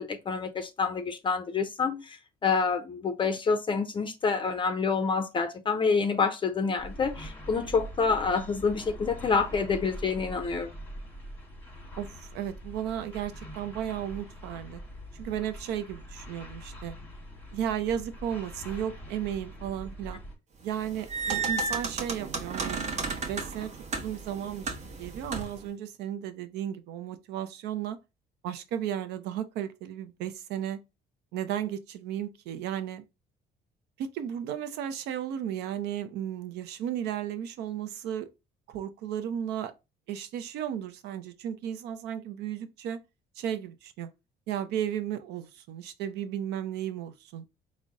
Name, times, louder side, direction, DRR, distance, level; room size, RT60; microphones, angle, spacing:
voice 1, 0.0-10.7, left 5 dB, 30° left, 0.4 m, -27 dB
sound 1, 6.8-20.4, equal, 10° left, 1.0 m, -43 dB
voice 2, 12.0-14.8 15.1-17.0 17.5-20.2 20.6-28.0 28.4-30.8 31.3-33.0 34.0-38.3 38.7-39.7 40.1-43.0 43.4-44.1 44.5-47.4, right 10 dB, 80° right, 0.5 m, -34 dB
sound 2, 20.7-25.7, right 4 dB, 45° right, 0.8 m, -33 dB
3.9 x 2.1 x 3.5 m
cardioid pair, 110°, 17 cm